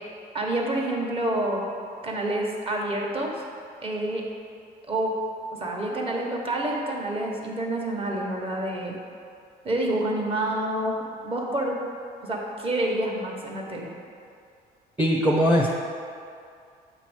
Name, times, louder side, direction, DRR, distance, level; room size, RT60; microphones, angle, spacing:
voice 1, 0.3-1.6 2.0-3.3 3.8-4.2 4.9-5.1 5.6-8.9 9.6-11.8 12.2-13.9, right 1 dB, 35° right, -1 dB, 1.2 m, -28 dB
voice 2, 15.0-15.7, equal, 10° right, -2 dB, 0.6 m, -20 dB
8.0 x 3.0 x 6.2 m, 2.4 s
cardioid pair, 110°, 17 cm